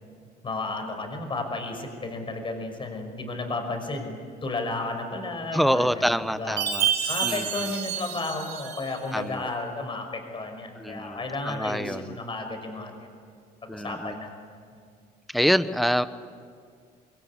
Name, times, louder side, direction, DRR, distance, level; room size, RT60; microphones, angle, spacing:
voice 1, 0.4-6.6 7.1-13.0 13.6-14.3 14.7-14.9, left 2 dB, 30° left, 5 dB, 5.9 m, -33 dB
voice 2, 5.5-6.9 7.2-7.5 9.1-9.5 10.8-11.2 11.4-12.2 13.7-14.2 15.3-16.1, equal, ahead, 13 dB, 1.0 m, -26 dB
Chime, 6.6-9.1, right 8 dB, 75° right, 3.9 m, -29 dB
26.5 x 22.0 x 9.8 m, 2.1 s
cardioid pair, 110°, 17 cm